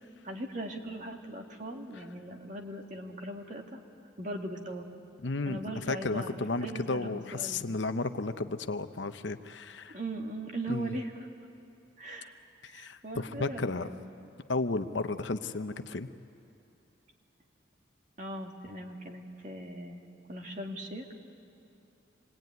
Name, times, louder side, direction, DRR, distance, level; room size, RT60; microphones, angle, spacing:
voice 1, 0.2-3.8 4.2-4.8 5.5-7.7 9.9-11.3 12.0-14.1 18.2-21.1, right 1 dB, 40° right, 2 dB, 2.0 m, -40 dB
voice 2, 5.2-10.0 10.7-11.0 12.6-13.9 14.5-16.1, left 3 dB, 65° left, 9 dB, 0.8 m, -33 dB
26.5 x 21.0 x 9.4 m, 2.7 s
head